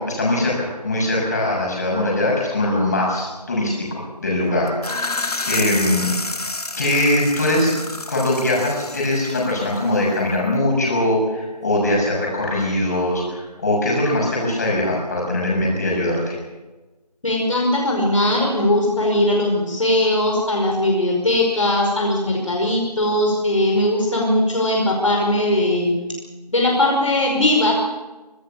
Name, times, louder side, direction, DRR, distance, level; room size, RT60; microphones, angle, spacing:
voice 1, 0.0-4.7 5.5-6.1 6.8-7.8 8.1-16.4, left 1 dB, 25° left, -2 dB, 6.8 m, -21 dB
sound 1, 4.7-10.3, left 2 dB, 65° left, 2.3 m, -29 dB
voice 2, 17.2-26.1 26.5-27.7, left 1 dB, 50° left, 0 dB, 5.1 m, -19 dB
25.0 x 18.5 x 7.2 m, 1.2 s
figure-of-eight pair, 175°, 21 cm